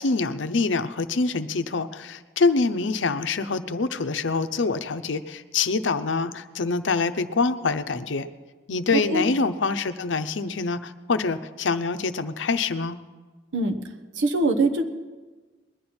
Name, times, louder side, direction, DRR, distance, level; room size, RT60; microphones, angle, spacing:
voice 1, 0.0-8.3 8.7-13.0, left 4 dB, 80° left, 11 dB, 0.7 m, -25 dB
voice 2, 14.2-14.8, right 2 dB, 85° right, 4 dB, 1.1 m, -22 dB
21.0 x 11.0 x 4.3 m, 1.3 s
head